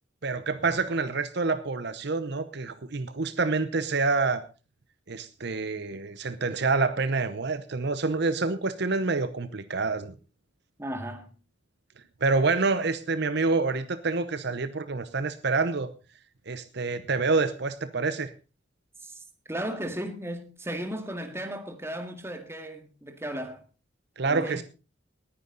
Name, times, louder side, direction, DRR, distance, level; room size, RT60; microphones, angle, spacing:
voice 1, 0.2-4.4 5.1-10.1 12.2-15.9 16.5-18.3 24.2-24.6, right 3 dB, 60° right, 0.8 m, -27 dB
voice 2, 10.8-11.3 19.0-23.6 24.3-24.6, right 1 dB, 15° right, 2.0 m, -35 dB
19.5 x 9.5 x 4.0 m
head